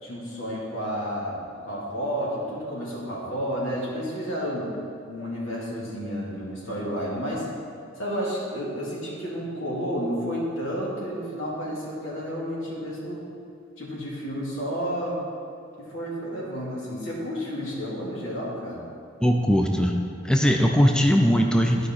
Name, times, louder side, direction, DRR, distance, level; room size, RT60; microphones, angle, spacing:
voice 1, 0.0-4.7 5.1-7.5 8.0-13.2 13.8-15.2 15.8-18.8, equal, 85° left, -5 dB, 2.3 m, -31 dB
voice 2, 19.2-20.0 20.2-21.9, equal, 5° left, 2 dB, 0.4 m, -20 dB
13.0 x 4.9 x 4.3 m, 2.4 s
head